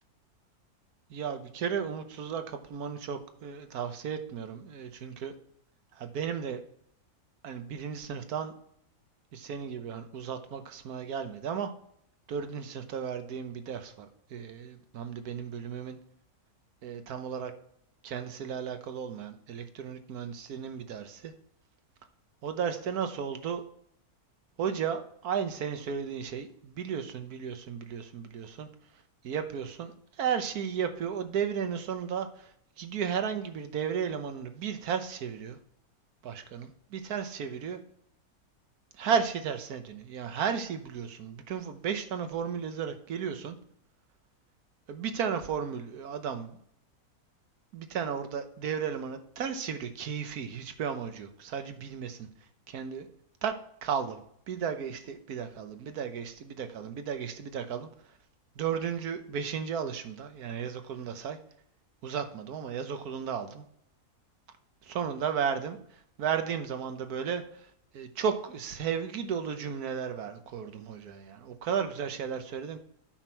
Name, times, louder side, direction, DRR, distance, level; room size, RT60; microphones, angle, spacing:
voice 1, 1.1-5.3 5.9-6.6 7.4-8.5 9.3-11.7 12.3-16.0 16.8-17.5 18.0-21.3 22.4-23.6 24.6-28.7 29.2-32.5 32.8-35.6 36.2-37.8 39.0-43.6 44.9-46.6 47.7-52.2 52.7-53.1 53.4-53.5 53.8-54.2 54.5-57.9 58.6-61.4 62.0-63.6 64.9-65.8 66.2-67.7 67.9-72.8, right 7 dB, 80° right, 8 dB, 1.4 m, -34 dB
8.8 x 6.0 x 4.6 m, 0.68 s
omnidirectional pair, 1.6 m